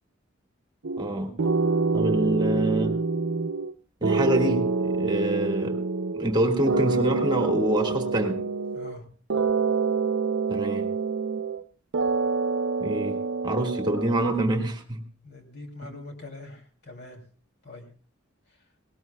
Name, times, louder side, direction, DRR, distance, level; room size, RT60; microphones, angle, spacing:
sound 1, 0.8-1.1 1.4-3.7 4.0-6.4 6.7-9.0 9.3-11.6 11.9-14.2, right 4 dB, 65° right, 0.6 m, -26 dB
voice 1, 1.0-1.3 1.9-2.9 4.0-5.8 6.1-8.4 10.5-10.9 12.8-13.2 13.4-15.0 15.8-15.9, right 1 dB, 20° right, 4 dB, 1.7 m, -26 dB
voice 2, 8.7-9.0 15.2-17.2 17.6-17.9, left 2 dB, 55° left, 2 dB, 2.7 m, -43 dB
19.0 x 18.5 x 2.2 m, 0.41 s
head